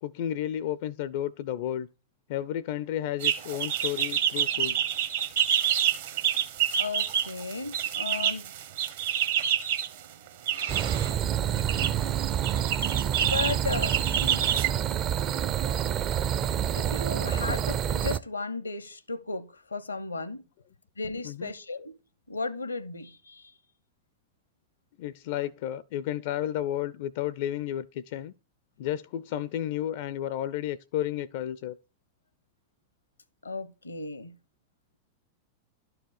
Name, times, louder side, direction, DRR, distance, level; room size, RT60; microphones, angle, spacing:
voice 1, 0.0-1.9 2.3-4.8 17.5-17.6 21.2-21.5 25.0-28.3 28.8-31.8, left 11 dB, 50° left, 0.4 m, -32 dB
sound 1, 3.2-9.9 10.5-11.1 11.6-11.9 12.4-14.7, right 10 dB, 60° right, 1.2 m, -27 dB
voice 2, 6.8-8.5 12.8-12.9 13.2-14.6 16.7-20.4 21.0-22.0 22.3-23.5 33.4-34.4, left 3 dB, 80° left, 0.8 m, -35 dB
sound 2, 10.7-18.2, right 9 dB, 35° right, 0.5 m, -28 dB
11.5 x 4.9 x 6.4 m
figure-of-eight pair, 90°, 0 cm